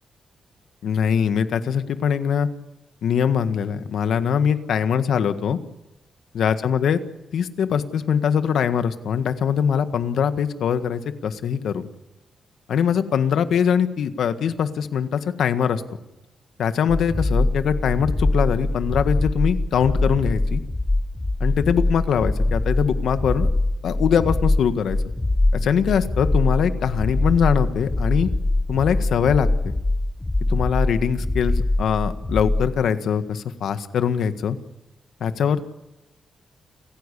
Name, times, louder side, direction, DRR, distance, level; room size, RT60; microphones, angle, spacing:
voice 1, 0.8-2.5 3.0-5.6 6.3-7.0 7.3-11.9 12.7-15.8 16.6-20.6 21.4-23.5 23.8-25.0 25.5-28.3 28.7-29.7 30.5-34.6 35.2-35.6, left 7 dB, 70° left, 10 dB, 1.7 m, -22 dB
sound 1, 16.9-32.7, left 2 dB, 15° left, 1.3 m, -23 dB
29.5 x 15.5 x 8.5 m, 0.99 s
wide cardioid pair, 160°, 0 cm